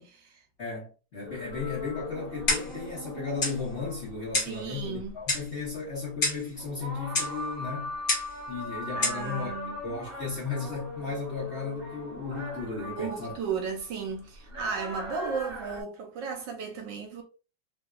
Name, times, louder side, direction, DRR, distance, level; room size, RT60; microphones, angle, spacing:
voice 1, 0.0-0.4 4.5-5.2 8.9-9.8 13.0-17.2, right 5 dB, 70° right, 1.3 m, -35 dB
voice 2, 0.6-7.9 8.5-13.4, left 4 dB, 45° left, 1.0 m, -35 dB
sound 1, 1.2-15.8, left 2 dB, 45° right, 0.7 m, -40 dB
Clock, 2.5-2.8 3.4-3.6 4.3-4.6 5.3-5.5 6.2-6.5 7.1-7.4 8.1-8.3 9.0-9.2, left 3 dB, 65° left, 0.5 m, -28 dB
3.4 x 2.7 x 2.3 m
omnidirectional pair, 2.2 m